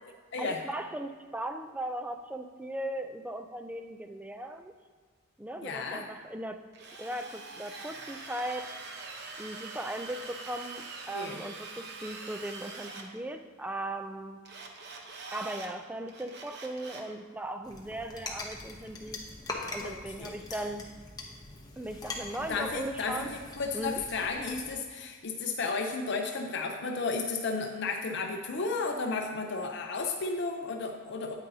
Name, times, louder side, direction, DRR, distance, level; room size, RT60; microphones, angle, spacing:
voice 1, 0.4-4.7 5.4-6.6 7.0-8.7 9.4-14.4 15.3-19.2 19.7-20.9 21.8-23.3 23.7-24.0, right 1 dB, 5° right, 7 dB, 0.3 m, -38 dB
voice 2, 5.6-6.1 11.1-11.4 19.8-20.4 22.5-31.3, left 4 dB, 60° left, 3 dB, 0.6 m, -33 dB
Drill, 6.7-13.1 14.5-15.7 16.1-17.1, right 3 dB, 55° right, 0.9 m, -44 dB
sound 1, 17.6-24.7, left 2 dB, 20° left, 0.8 m, -43 dB
9.2 x 8.9 x 2.7 m, 1.5 s
head